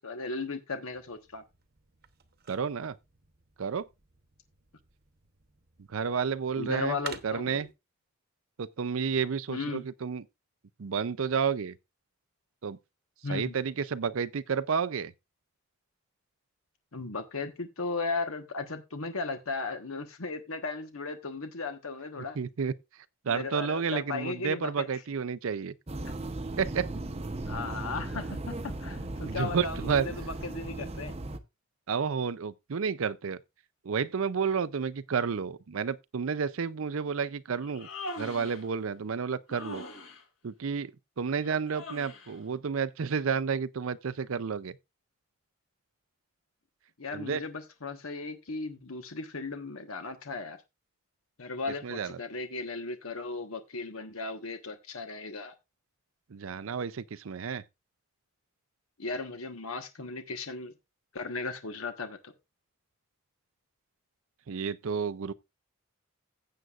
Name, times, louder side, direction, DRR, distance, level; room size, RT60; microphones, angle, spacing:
voice 1, 0.0-1.4 6.6-7.7 9.5-9.8 13.2-13.5 16.9-22.4 23.3-24.9 26.0-26.1 27.5-31.1 47.0-50.6 51.4-55.5 59.0-60.7 61.1-62.3, left 3 dB, 80° left, 1.2 m, -36 dB
sound 1, 0.9-7.7, right 8 dB, 45° right, 1.0 m, -50 dB
voice 2, 2.5-3.0 3.6-3.9 5.9-7.0 7.2-7.7 8.6-10.2 10.8-11.8 12.6-12.8 13.3-15.1 22.4-22.7 23.2-25.8 26.6-26.9 29.2-30.1 31.9-33.4 33.8-37.9 38.2-39.8 40.4-40.9 41.2-44.8 47.1-47.4 51.8-52.2 56.3-57.6 64.5-65.3, right 6 dB, 75° right, 0.5 m, -31 dB
sound 2, 25.9-31.4, right 2 dB, 30° right, 0.7 m, -37 dB
Human voice, 37.6-38.7 39.5-40.2 41.7-42.4, left 1 dB, 65° left, 2.9 m, -41 dB
15.5 x 7.9 x 2.4 m
head